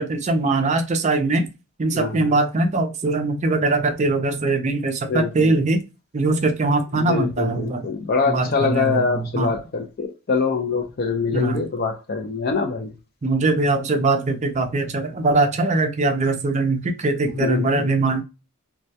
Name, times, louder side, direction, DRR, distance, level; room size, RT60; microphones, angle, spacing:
voice 1, 0.0-1.5 1.8-5.8 6.1-7.9 8.3-9.5 11.3-11.6 13.2-18.2, right 2 dB, 30° right, 0.4 m, -21 dB
voice 2, 1.9-2.3 5.1-5.6 6.9-12.9 17.4-17.9, left 4 dB, 45° left, 0.4 m, -24 dB
2.2 x 2.1 x 2.6 m
head